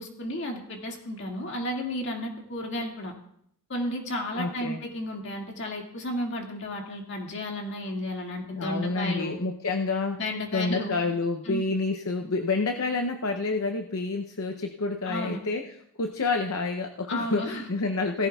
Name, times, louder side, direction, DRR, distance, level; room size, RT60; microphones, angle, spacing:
voice 1, 0.0-3.1 3.7-9.4 10.1-11.0 11.4-11.6 15.1-15.4 17.1-17.7, left 1 dB, 55° left, 0 dB, 2.1 m, -33 dB
voice 2, 4.3-4.8 8.5-10.2 10.5-15.7 16.0-18.3, left 3 dB, 70° left, 5 dB, 0.7 m, -28 dB
17.5 x 14.5 x 2.4 m, 0.72 s
head